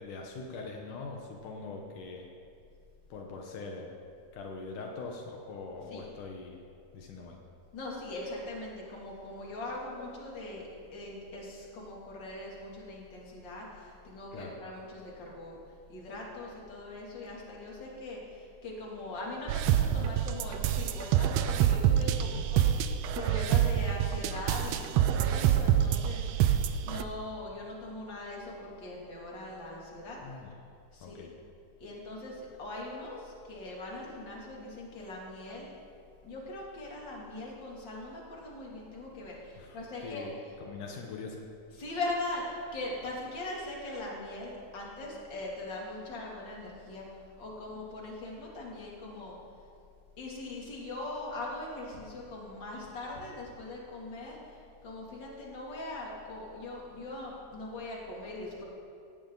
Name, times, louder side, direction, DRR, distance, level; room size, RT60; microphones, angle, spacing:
voice 1, 0.0-2.3 3.1-3.9 4.3-6.6 6.9-7.4 14.3-14.6 22.3-22.4 30.2-30.5 31.0-31.3 39.6-40.3 40.6-41.4, left 4 dB, 80° left, 1 dB, 2.8 m, -42 dB
voice 2, 7.7-15.6 15.9-22.7 23.1-30.2 30.9-31.3 31.8-35.7 36.2-40.3 41.8-47.0 47.4-49.4 50.2-58.6, left 2 dB, 35° left, -3 dB, 3.4 m, -41 dB
sound 1, 19.5-27.0, right 10 dB, 85° right, 1.5 m, -26 dB
18.0 x 16.5 x 4.0 m, 2.5 s
omnidirectional pair, 3.6 m